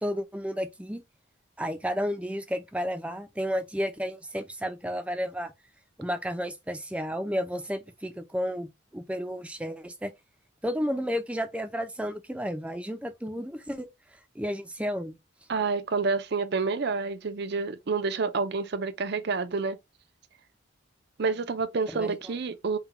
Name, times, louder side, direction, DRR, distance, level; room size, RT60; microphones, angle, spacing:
voice 1, 0.0-1.0 1.6-5.5 6.0-10.1 10.6-13.9 14.4-15.2 21.9-22.1, equal, 5° right, 0.5 m, -32 dB
voice 2, 15.5-19.8 21.2-22.8, right 4 dB, 55° right, 0.5 m, -28 dB
3.9 x 2.2 x 4.0 m
head